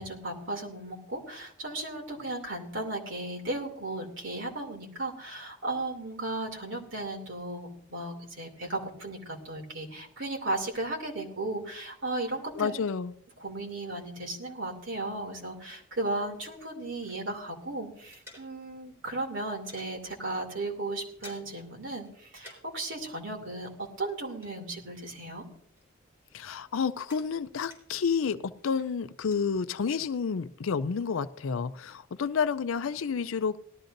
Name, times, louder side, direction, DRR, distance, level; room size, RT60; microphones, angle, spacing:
voice 1, 0.0-12.7 13.4-23.7 24.0-25.4, right 2 dB, 60° right, 2 dB, 2.7 m, -35 dB
voice 2, 12.6-13.1 26.3-33.6, left 6 dB, 75° left, 13 dB, 0.5 m, -30 dB
sound 1, 16.3-17.5 17.8-18.9 19.2-19.9 20.4-20.5 20.8-21.7 22.0-22.8 23.1-25.4 25.7-28.1 28.5-29.5, left 1 dB, 10° right, 3.9 m, -55 dB
18.0 x 13.0 x 2.6 m, 0.63 s
head